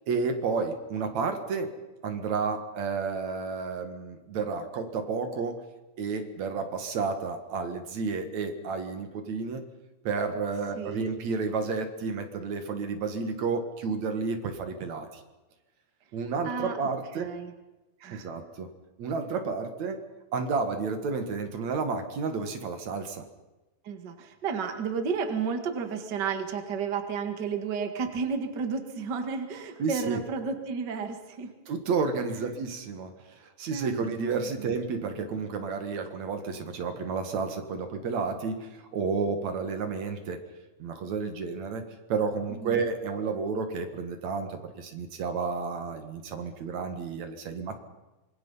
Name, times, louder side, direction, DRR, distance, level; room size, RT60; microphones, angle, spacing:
voice 1, 0.1-1.7 2.0-5.6 6.0-9.6 10.0-15.1 16.1-17.3 18.1-18.7 19.0-20.0 20.3-23.2 29.8-30.2 31.7-40.4 40.8-41.8 42.1-47.8, right 4 dB, 50° right, 7 dB, 2.4 m, -31 dB
voice 2, 10.7-11.1 16.4-16.8 17.1-17.5 18.0-18.3 23.8-31.5 32.4-32.5 33.7-34.8 42.5-42.9, right 5 dB, 80° right, 7 dB, 0.9 m, -32 dB
26.0 x 22.0 x 5.7 m, 1.1 s
omnidirectional pair, 5.3 m